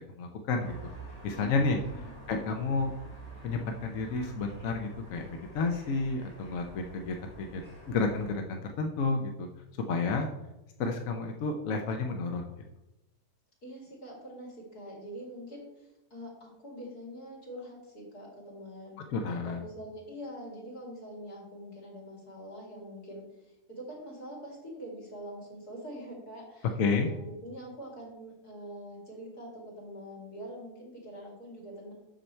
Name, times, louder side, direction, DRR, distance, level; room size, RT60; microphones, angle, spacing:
voice 1, 0.2-0.7 1.2-1.8 2.3-2.9 3.4-7.6 7.9-9.5 9.9-10.3 10.8-12.4 19.1-19.6 26.8-27.1, left 3 dB, 65° left, 3 dB, 1.1 m, -30 dB
sound 1, 0.6-8.3, right 3 dB, 15° left, 3.2 m, -48 dB
voice 2, 1.3-1.9 13.6-19.0 19.4-31.9, equal, 85° left, -3 dB, 3.1 m, -44 dB
7.8 x 6.7 x 4.4 m, 0.99 s
omnidirectional pair, 1.6 m